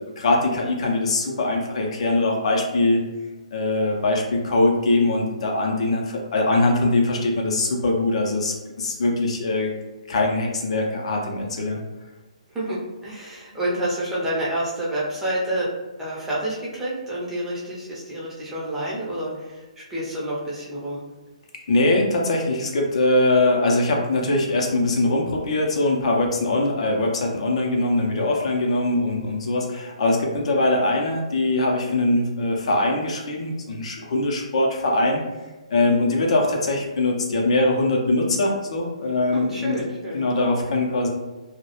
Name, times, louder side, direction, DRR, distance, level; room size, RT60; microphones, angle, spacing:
voice 1, 0.0-3.0 3.5-9.7 10.1-11.8 21.7-35.2 35.7-39.8 40.1-41.1, left 2 dB, 55° left, 0 dB, 0.5 m, -22 dB
voice 2, 12.5-15.7 16.0-21.0 39.3-40.2, right 1 dB, 10° right, -7 dB, 0.6 m, -28 dB
2.2 x 2.1 x 2.9 m, 1.2 s
figure-of-eight pair, 135°, 4 cm